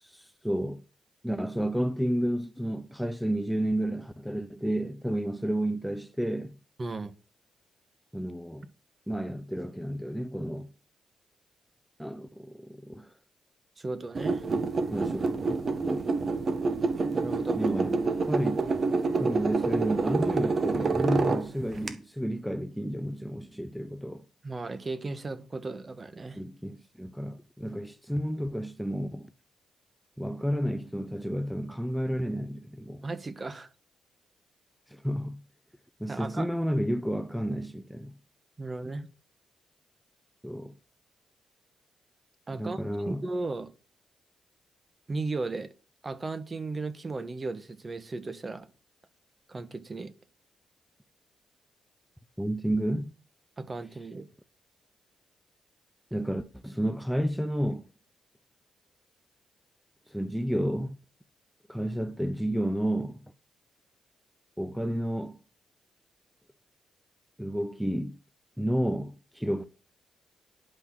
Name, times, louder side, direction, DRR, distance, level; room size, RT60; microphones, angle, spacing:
voice 1, 0.0-0.8 1.2-6.5 8.1-8.7 9.1-10.7 12.0-13.1 14.9-15.6 15.8-16.1 17.5-18.0 18.3-18.6 19.2-24.2 26.4-29.3 30.2-33.0 34.9-35.4 36.0-38.1 40.4-40.7 42.6-43.2 52.4-53.1 56.1-57.8 60.1-60.9 61.7-63.2 64.6-65.4 67.4-68.2 68.6-69.6, equal, ahead, 0.7 m, -31 dB
voice 2, 6.8-7.1 13.8-14.4 17.1-17.7 24.4-26.4 33.0-33.7 36.1-36.5 38.6-39.1 42.5-43.7 45.1-45.7 46.0-48.7 49.5-50.1 53.6-54.3, right 3 dB, 35° right, 1.3 m, -35 dB
sound 1, 14.1-21.9, right 4 dB, 50° right, 1.6 m, -27 dB
10.5 x 6.0 x 6.0 m
cardioid pair, 65°, 0 cm